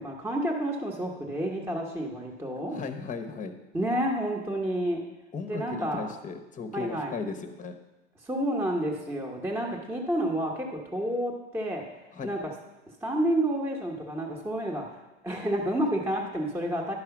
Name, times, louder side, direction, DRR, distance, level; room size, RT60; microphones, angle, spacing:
voice 1, 0.0-2.8 3.7-5.1 5.5-6.1 6.7-7.2 8.2-11.9 12.2-12.5 13.0-15.0 15.2-16.9, right 1 dB, 5° right, -1 dB, 1.0 m, -30 dB
voice 2, 2.7-3.5 5.3-7.8 12.1-12.3, left 5 dB, 20° left, 7 dB, 0.9 m, -36 dB
11.0 x 4.8 x 5.9 m, 1.1 s
supercardioid pair, 120°, 36 cm